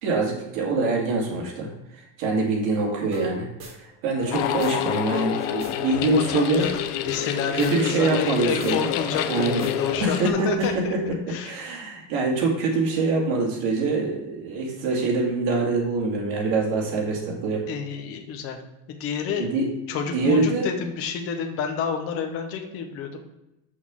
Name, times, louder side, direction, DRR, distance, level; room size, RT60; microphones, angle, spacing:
voice 1, 0.0-1.7 1.9-6.7 7.5-8.9 9.3-9.6 10.0-17.6 19.4-19.7 20.1-20.7, right 3 dB, 65° right, -1 dB, 2.2 m, -24 dB
sound 1, 3.1-3.3 3.6-4.7 5.0-8.3 8.6-8.7 9.0-11.1, right 2 dB, 45° right, 2.7 m, -41 dB
sound 2, 4.3-10.3, left 12 dB, 80° left, 0.6 m, -28 dB
voice 2, 6.1-11.5 17.7-18.6 18.9-19.5 19.9-23.2, left 6 dB, 40° left, 4 dB, 0.8 m, -29 dB
6.3 x 3.7 x 6.2 m, 0.92 s
cardioid pair, 175°, 37 cm